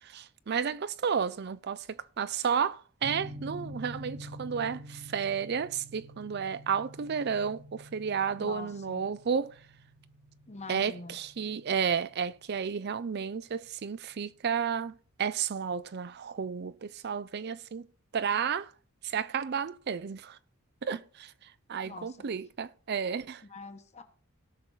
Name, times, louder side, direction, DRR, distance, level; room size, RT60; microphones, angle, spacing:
voice 1, 0.0-9.6 10.7-17.9 18.1-18.7 19.0-20.4 20.8-23.4, right 6 dB, 50° right, 0.4 m, -32 dB
sound 1, 3.0-13.2, equal, 30° right, 1.1 m, -48 dB
voice 2, 8.4-9.0 10.5-11.2 21.8-22.2 23.5-24.0, left 3 dB, 30° left, 1.2 m, -44 dB
17.5 x 6.1 x 4.0 m
head